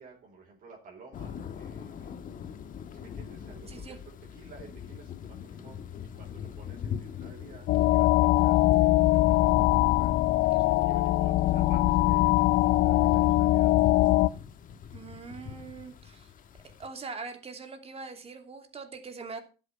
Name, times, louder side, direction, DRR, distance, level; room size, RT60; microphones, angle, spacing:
voice 1, 0.0-2.1 2.9-5.8 6.1-10.5 10.8-14.0, right 5 dB, 55° right, -1 dB, 4.7 m, -52 dB
sound 1, 1.1-16.9, left 8 dB, 55° left, 1.5 m, -42 dB
sound 2, 7.7-14.3, left 16 dB, 70° left, 0.6 m, -22 dB
voice 2, 14.9-16.3 16.8-19.4, right 4 dB, 35° right, 6 dB, 2.9 m, -42 dB
12.5 x 8.0 x 5.8 m, 0.35 s
cardioid pair, 110°, 17 cm